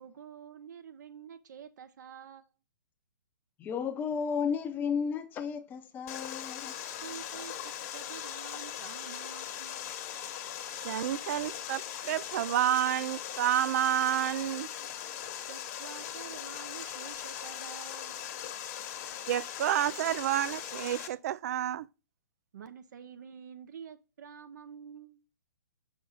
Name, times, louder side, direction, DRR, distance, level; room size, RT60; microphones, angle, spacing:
voice 1, 0.0-2.5 7.0-9.9 15.5-18.2 22.5-25.2, right 7 dB, 65° right, 0.8 m, -48 dB
voice 2, 3.6-6.7, left 6 dB, 20° left, 0.7 m, -33 dB
Water, 6.1-21.1, left 10 dB, 45° left, 1.2 m, -40 dB
voice 3, 10.8-14.7 19.3-21.9, right 11 dB, 50° right, 0.4 m, -29 dB
6.2 x 4.7 x 4.0 m
hypercardioid pair, 140°, 10 cm